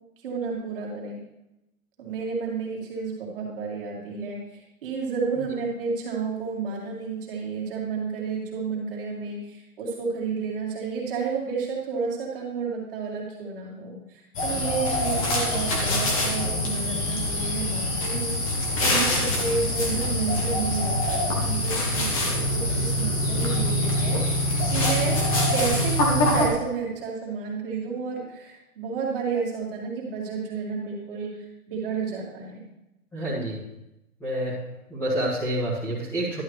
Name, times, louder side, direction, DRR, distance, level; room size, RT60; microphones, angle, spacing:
voice 1, 0.2-1.2 2.0-25.2 25.5-32.6, right 5 dB, 35° right, -4 dB, 2.4 m, -31 dB
sound 1, 14.3-26.5, left 1 dB, 25° left, 1.2 m, -24 dB
voice 2, 33.1-33.6 34.2-34.6 34.9-36.4, right 1 dB, 5° left, -11 dB, 1.6 m, -28 dB
11.5 x 8.1 x 3.2 m, 0.92 s
hypercardioid pair, 165°, 45 cm